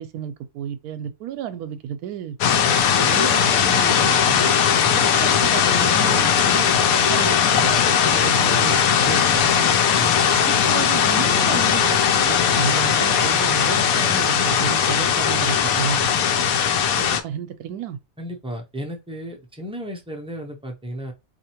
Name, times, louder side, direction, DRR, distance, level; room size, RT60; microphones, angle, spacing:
voice 1, 0.0-2.4 2.9-4.5 4.9-9.7 10.4-16.1 16.3-16.4 16.9-18.0, right 9 dB, 85° right, 1.1 m, -32 dB
sound 1, 2.4-17.2, left 8 dB, 70° left, 1.0 m, -19 dB
voice 2, 10.0-10.3 18.2-21.1, equal, 5° right, 0.4 m, -34 dB
4.2 x 2.6 x 2.8 m
omnidirectional pair, 1.6 m